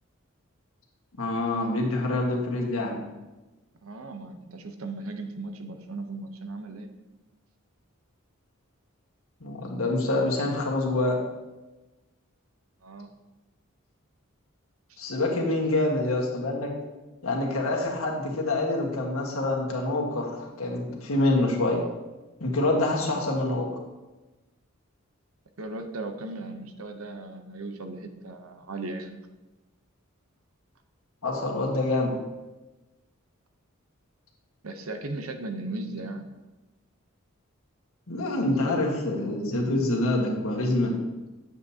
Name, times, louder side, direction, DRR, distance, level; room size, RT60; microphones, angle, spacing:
voice 1, 1.2-3.0 9.4-11.2 15.0-16.7 17.2-21.8 22.4-23.7 31.2-32.1 38.1-41.0, left 2 dB, 85° left, -1 dB, 1.6 m, -26 dB
voice 2, 3.8-6.9 12.8-13.1 14.9-15.0 25.6-29.2 34.6-36.3, right 2 dB, 85° right, 6 dB, 0.8 m, -37 dB
8.8 x 7.1 x 2.8 m, 1.1 s
head